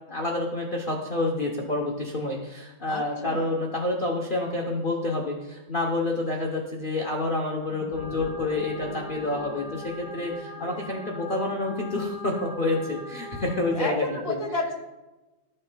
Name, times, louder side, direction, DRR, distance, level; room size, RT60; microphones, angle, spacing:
voice 1, 0.1-14.4, left 2 dB, 45° left, 0 dB, 0.7 m, -28 dB
voice 2, 2.9-3.5 13.7-14.7, left 2 dB, 20° right, 0 dB, 0.7 m, -31 dB
sound 1, 7.6-12.1, left 3 dB, 15° left, 1.1 m, -44 dB
sound 2, 7.9-13.8, equal, 50° right, 2.9 m, -41 dB
13.0 x 6.5 x 2.3 m, 1.1 s
omnidirectional pair, 2.0 m